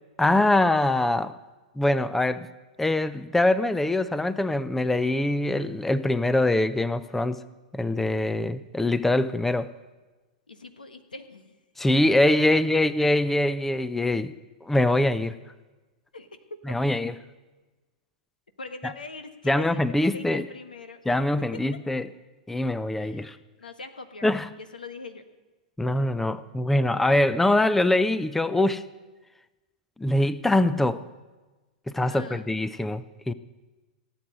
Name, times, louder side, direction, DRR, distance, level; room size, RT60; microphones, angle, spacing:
voice 1, 0.2-1.3 1.8-2.5 2.8-7.4 7.7-9.7 11.8-14.3 14.6-15.4 16.7-17.2 19.5-20.4 21.1-22.1 22.5-23.4 24.2-24.5 25.8-28.8 30.0-31.0 31.9-33.3, left 1 dB, 5° left, 15 dB, 0.5 m, -23 dB
voice 2, 10.5-11.6 11.9-12.6 16.1-16.3 18.6-21.0 21.5-21.6 22.9-24.3 24.5-25.2 32.1-32.5, left 3 dB, 85° left, 9 dB, 1.4 m, -42 dB
16.5 x 7.6 x 8.8 m, 1.2 s
hypercardioid pair, 105°, 5 cm